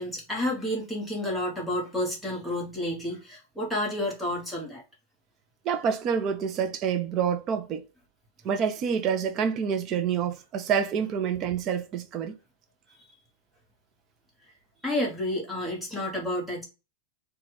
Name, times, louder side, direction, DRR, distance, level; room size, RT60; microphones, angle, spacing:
voice 1, 0.0-4.8 12.9-13.0 14.8-16.6, left 1 dB, ahead, 1.3 m, -30 dB
voice 2, 5.6-7.8 8.4-12.3, right 7 dB, 30° right, 0.6 m, -27 dB
4.1 x 2.4 x 4.7 m
supercardioid pair, 160°, 0 cm